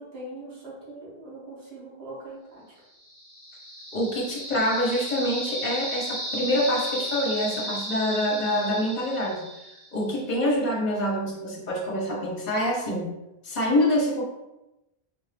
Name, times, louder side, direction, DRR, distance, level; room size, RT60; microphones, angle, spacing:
voice 1, 0.0-2.6, right 1 dB, 75° right, -7 dB, 1.6 m, -41 dB
sound 1, 3.0-10.0, equal, 55° right, 1.8 m, -34 dB
voice 2, 3.9-9.4 9.9-13.1 13.4-14.2, left 1 dB, 45° left, -3 dB, 1.1 m, -26 dB
3.8 x 2.6 x 3.3 m, 0.96 s
omnidirectional pair, 1.0 m